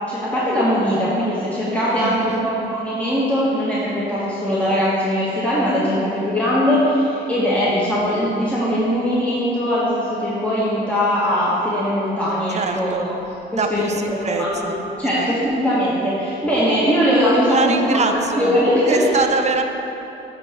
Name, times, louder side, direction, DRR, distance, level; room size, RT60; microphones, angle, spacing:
voice 1, 0.0-13.1 13.5-19.2, equal, 5° left, -9 dB, 1.8 m, -20 dB
voice 2, 2.0-2.5 12.5-13.2 13.5-15.3 17.4-18.5 18.9-19.6, right 4 dB, 35° right, 5 dB, 0.7 m, -24 dB
12.0 x 4.6 x 3.7 m, 2.9 s
cardioid pair, 90°, 20 cm